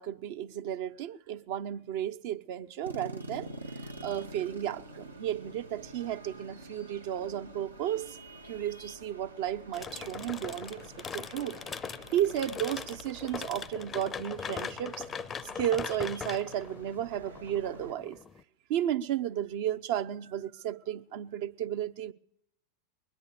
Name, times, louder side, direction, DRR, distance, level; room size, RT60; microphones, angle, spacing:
voice 1, 0.0-8.2 8.5-10.8 11.1-11.6 12.1-15.1 15.6-18.2 18.7-22.1, right 11 dB, 50° right, 0.6 m, -33 dB
sound 1, 2.8-17.9, right 1 dB, 80° right, 1.1 m, -48 dB
sound 2, 9.7-18.4, left 6 dB, 20° left, 0.5 m, -40 dB
21.5 x 9.8 x 6.7 m
figure-of-eight pair, 90°, 0 cm